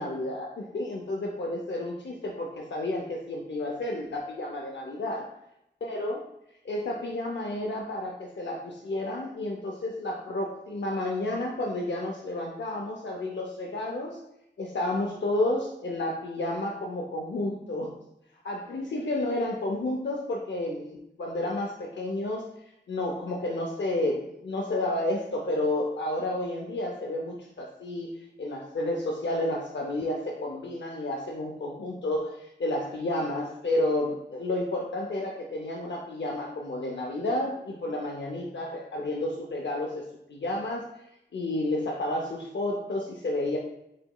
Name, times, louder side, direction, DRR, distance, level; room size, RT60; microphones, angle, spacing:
voice 1, 0.0-5.3 5.8-6.2 6.6-14.2 14.6-18.0 18.4-22.4 22.9-40.8 41.3-43.6, left 1 dB, 85° left, -1 dB, 0.5 m, -31 dB
7.4 x 2.9 x 2.2 m, 0.82 s
wide cardioid pair, 80°, 18 cm